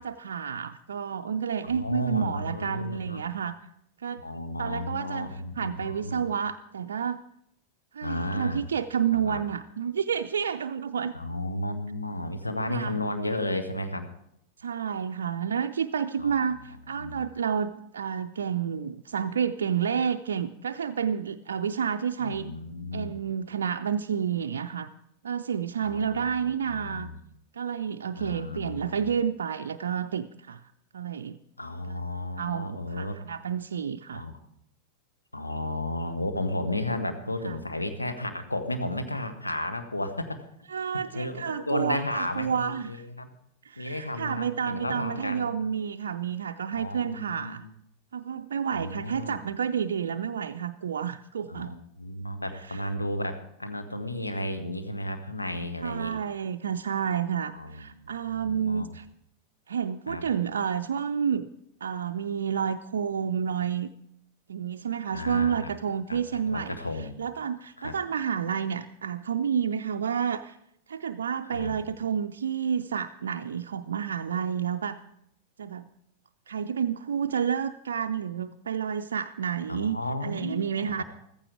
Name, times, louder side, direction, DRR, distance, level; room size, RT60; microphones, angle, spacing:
voice 1, 0.0-3.6 4.0-4.2 4.6-7.2 7.9-11.1 12.7-13.0 14.6-22.5 22.9-24.9 25.2-27.1 27.5-30.6 30.9-31.4 31.9-32.0 32.4-34.2 37.5-37.6 40.7-43.0 43.6-47.6 48.1-51.8 52.5-52.8 55.8-59.1 59.7-61.5 61.8-63.9 64.5-66.8 67.2-70.6 70.9-75.0 75.6-75.9 76.5-81.0, right 7 dB, 65° right, 7 dB, 0.4 m, -30 dB
voice 2, 1.6-3.2 4.2-6.3 8.0-8.6 9.1-9.4 11.1-14.1 16.2-16.4 16.7-17.2 22.2-23.2 25.8-27.2 28.2-29.1 31.6-33.2 34.1-34.3 35.3-40.4 40.9-43.3 43.8-45.4 46.7-47.7 48.7-49.4 51.5-56.2 57.5-57.9 58.2-58.9 60.1-60.2 65.1-65.7 66.1-67.2 67.8-68.0 71.5-71.8 79.7-81.0, left 1 dB, 80° left, 8 dB, 1.3 m, -33 dB
15.0 x 14.5 x 4.9 m, 0.76 s
figure-of-eight pair, 90°, 0 cm